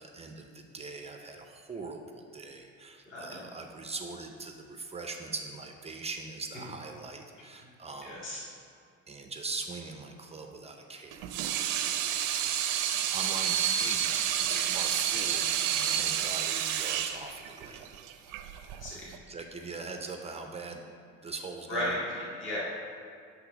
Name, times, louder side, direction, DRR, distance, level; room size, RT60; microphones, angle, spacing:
voice 1, 0.0-8.2 9.1-11.3 12.4-12.9 13.1-14.2 14.5-17.9 19.3-20.8 21.2-21.9, right 3 dB, 20° right, 4 dB, 0.5 m, -41 dB
voice 2, 3.1-3.4 8.0-8.4 18.8-19.1 21.7-22.6, left 1 dB, 40° left, -7 dB, 1.9 m, -35 dB
Water tap faucet / Sink (filling or washing), 11.1-19.2, right 10 dB, 85° right, 0.6 m, -29 dB
7.9 x 3.4 x 5.8 m, 2.2 s
cardioid pair, 120°, 30 cm